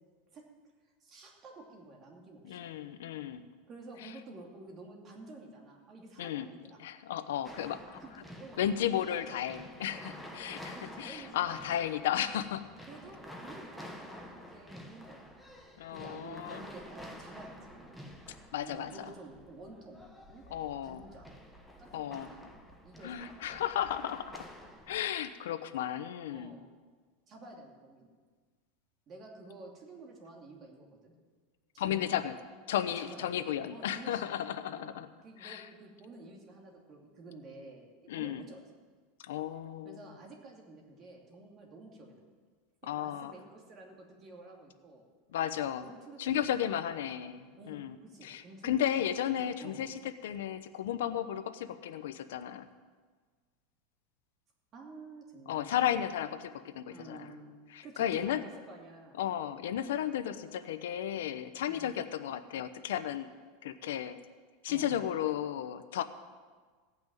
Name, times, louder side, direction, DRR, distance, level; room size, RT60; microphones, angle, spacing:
voice 1, 1.0-2.7 3.7-6.8 7.4-7.6 8.0-8.6 9.1-9.4 9.8-10.0 10.3-11.6 12.9-15.6 15.9-18.1 18.6-20.4 20.8-21.4 21.8-22.5 22.8-23.6 26.3-26.7 27.3-28.1 29.1-31.1 31.7-32.2 33.0-33.4 33.7-34.4 34.7-38.6 39.8-42.2 42.8-45.0 45.8-46.9 47.6-48.9 49.6-49.8 54.7-55.9 56.9-57.5 57.8-59.2 61.6-61.9 64.7-65.0, right 2 dB, 30° right, 0 dB, 2.7 m, -51 dB
voice 2, 2.4-3.4 4.0-4.1 6.2-6.5 6.8-8.0 8.6-12.7 15.8-16.6 18.5-19.1 20.5-21.0 21.9-22.3 23.0-24.5 24.9-26.5 31.8-32.3 32.7-35.1 35.4-35.7 38.1-38.4 39.2-40.0 42.9-43.3 45.3-45.9 46.2-48.0 48.2-52.7 55.5-57.3 57.7-58.4 59.2-63.3 63.6-64.2 64.6-66.0, left 10 dB, 85° left, 11 dB, 0.8 m, -34 dB
sound 1, 7.4-25.0, equal, ahead, 1.2 m, -50 dB
16.5 x 6.0 x 8.9 m, 1.5 s
supercardioid pair, 145°, 0 cm